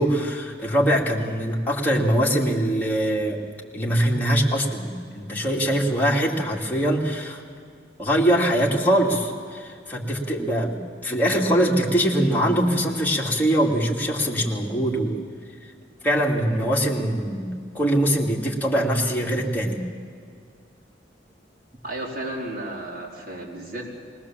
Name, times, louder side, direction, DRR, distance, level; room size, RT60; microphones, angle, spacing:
voice 1, 0.0-3.4 3.7-7.4 8.0-15.1 16.0-19.8, equal, 10° left, -3 dB, 2.3 m, -22 dB
voice 2, 21.8-23.9, right 1 dB, 55° right, -4 dB, 4.5 m, -33 dB
21.0 x 18.5 x 7.5 m, 2.2 s
head